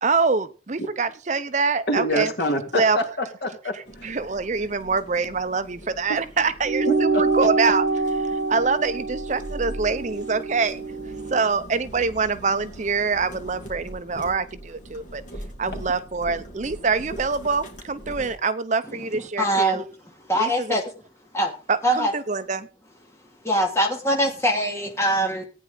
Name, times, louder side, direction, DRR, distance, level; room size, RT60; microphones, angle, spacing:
voice 1, 0.0-2.3 2.7-3.0 3.7-7.8 8.2-11.0 11.3-15.2 15.6-19.8 20.3-20.8 21.7-22.7, right 4 dB, 40° right, 12 dB, 0.6 m, -25 dB
voice 2, 1.9-3.7 4.0-4.1 6.1-6.2 6.9-7.5, equal, 65° left, 3 dB, 2.8 m, -26 dB
sound 1, 3.8-18.4, equal, 45° left, 2.8 m, -41 dB
sound 2, 6.6-11.5, right 3 dB, 90° right, 1.1 m, -25 dB
voice 3, 19.4-19.9 20.3-20.8 21.3-21.5 21.8-22.1 23.4-25.5, right 1 dB, 15° left, 1 dB, 2.4 m, -22 dB
15.0 x 9.4 x 3.9 m, 0.35 s
head